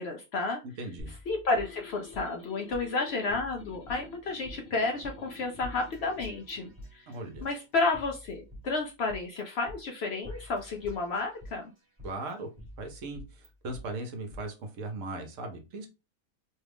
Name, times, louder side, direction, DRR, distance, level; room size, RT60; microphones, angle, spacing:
voice 1, 0.0-0.6 1.3-7.1 7.4-11.7, left 3 dB, 65° left, 3 dB, 0.7 m, -31 dB
voice 2, 0.8-1.1 7.1-7.5 12.0-12.5 12.8-15.9, right 2 dB, 65° right, 4 dB, 1.1 m, -38 dB
sound 1, 1.0-2.5 2.7-2.8 3.3-4.6 5.0-5.4 5.6-7.5 7.9-9.4 9.7-9.8 10.2-11.6 12.0-13.8 14.3-14.4, left 1 dB, 20° right, 1.0 m, -47 dB
sound 2, 1.5-6.7, left 4 dB, 50° left, 1.2 m, -50 dB
3.1 x 2.3 x 3.3 m, 0.27 s
omnidirectional pair, 1.5 m